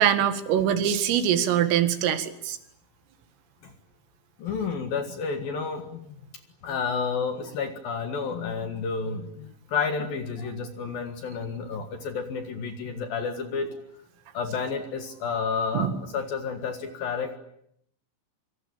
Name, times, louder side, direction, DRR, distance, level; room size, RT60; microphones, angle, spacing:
voice 1, 0.0-2.6 15.7-16.0, right 9 dB, 75° right, 9 dB, 4.5 m, -23 dB
voice 2, 4.4-6.1 6.6-13.7 14.3-17.4, left 5 dB, 60° left, 7 dB, 2.9 m, -30 dB
26.5 x 24.5 x 8.8 m, 0.73 s
omnidirectional pair, 6.0 m